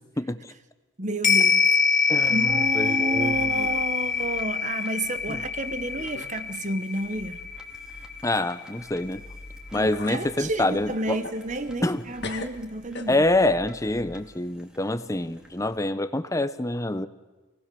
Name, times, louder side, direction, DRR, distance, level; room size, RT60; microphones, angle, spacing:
voice 1, 0.2-0.5 2.1-2.4 2.7-3.7 5.3-5.4 8.2-9.2 9.7-11.2 11.8-12.0 13.1-17.1, left 2 dB, 15° left, 0.9 m, -26 dB
voice 2, 1.0-7.5 9.7-13.3, right 2 dB, 35° right, 1.1 m, -31 dB
sound 1, 1.2-9.8 10.2-10.3, left 6 dB, 40° left, 2.6 m, -25 dB
sound 2, 1.6-2.5 2.7-3.2 3.7-3.8 4.6-4.7 5.5-5.6 6.0-6.4 6.6-6.8 9.3-9.4 9.7-10.2 10.7-12.0 12.2-13.5, left 3 dB, 55° left, 1.7 m, -41 dB
sound 3, 2.2-15.8, left 1 dB, 5° right, 2.4 m, -49 dB
28.5 x 18.5 x 6.9 m
head